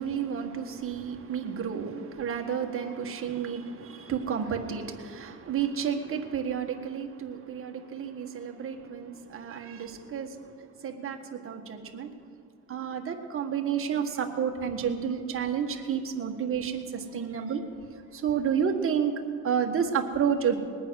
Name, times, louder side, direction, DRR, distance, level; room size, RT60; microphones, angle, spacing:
voice 1, 0.0-10.5 10.8-12.1 12.7-17.6 17.9-19.1 19.4-20.6, right 7 dB, 40° right, 3 dB, 1.6 m, -31 dB
20.0 x 9.1 x 6.3 m, 2.2 s
cardioid pair, 115°, 33 cm